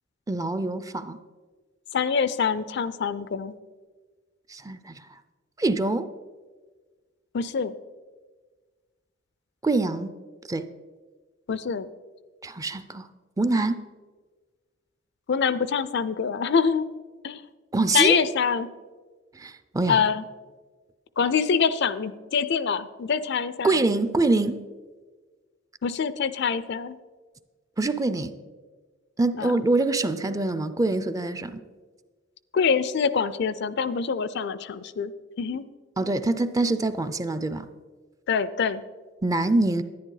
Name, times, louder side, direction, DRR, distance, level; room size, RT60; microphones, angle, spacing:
voice 1, 0.3-1.2 4.5-5.1 5.6-6.1 9.6-10.1 10.5-10.7 12.4-13.1 13.4-13.8 17.7-18.2 19.3-20.0 23.6-24.6 27.8-28.3 29.2-31.6 36.0-37.7 39.2-39.8, right 2 dB, 15° right, 12 dB, 0.4 m, -25 dB
voice 2, 1.9-3.5 7.3-7.7 11.5-11.9 15.3-16.8 17.2-17.4 17.9-18.7 19.9-20.2 21.2-23.8 25.8-27.0 29.4-29.5 32.5-35.1 35.4-35.6 38.3-38.8, left 6 dB, 60° left, 15 dB, 0.4 m, -25 dB
11.0 x 10.5 x 3.9 m, 1.4 s
head